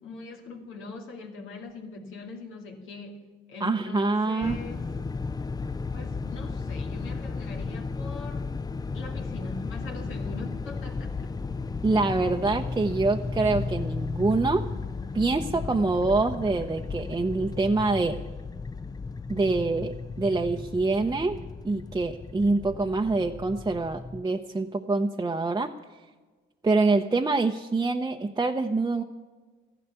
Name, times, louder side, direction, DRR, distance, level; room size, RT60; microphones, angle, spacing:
voice 1, 0.0-4.9 5.9-8.5 8.9-11.4, left 3 dB, 85° left, 1 dB, 2.5 m, -42 dB
voice 2, 3.6-4.6 11.8-14.6 15.1-18.2 19.3-21.4 21.6-25.7 26.6-29.0, right 3 dB, 20° right, 3 dB, 0.7 m, -25 dB
sound 1, 4.4-24.2, left 4 dB, 20° left, 0.5 m, -34 dB
14.5 x 11.5 x 6.9 m, 1.3 s
cardioid pair, 90°, 20 cm